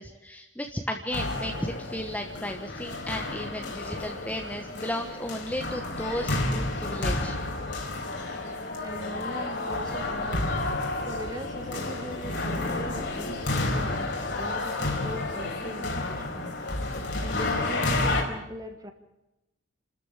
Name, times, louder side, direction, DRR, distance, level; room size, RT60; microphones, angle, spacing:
voice 1, 0.0-7.4, left 1 dB, 5° left, 3 dB, 1.2 m, -34 dB
sound 1, 1.1-18.2, left 2 dB, 55° left, 4.1 m, -31 dB
voice 2, 8.8-10.5 11.1-16.6 17.2-18.9, equal, 20° right, 6 dB, 1.4 m, -40 dB
28.5 x 13.5 x 7.4 m, 0.93 s
head